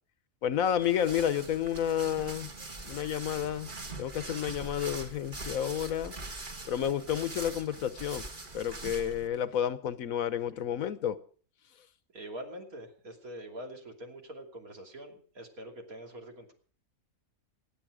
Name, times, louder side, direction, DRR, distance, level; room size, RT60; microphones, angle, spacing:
voice 1, 0.4-2.5 2.8-3.7 4.0-6.1 6.7-8.3 8.5-11.2, left 9 dB, 75° left, 14 dB, 1.3 m, -30 dB
sound 1, 0.7-9.3, right 2 dB, 35° right, 1.8 m, -43 dB
voice 2, 12.1-16.5, right 1 dB, 80° right, 2 dB, 3.3 m, -44 dB
27.0 x 9.2 x 4.9 m, 0.43 s
omnidirectional pair, 1.5 m